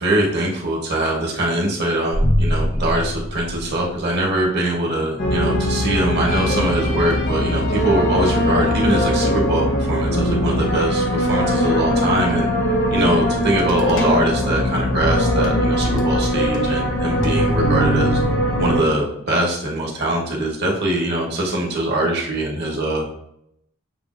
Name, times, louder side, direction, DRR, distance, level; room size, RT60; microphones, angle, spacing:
voice 1, 0.0-12.5 12.9-18.2 18.6-23.0, right 1 dB, 55° right, -1 dB, 1.1 m, -22 dB
sound 1, 2.1-4.4, equal, 15° left, 0.4 m, -22 dB
sound 2, 5.2-18.8, equal, 65° left, 1.0 m, -20 dB
6.8 x 2.3 x 2.5 m, 0.77 s
head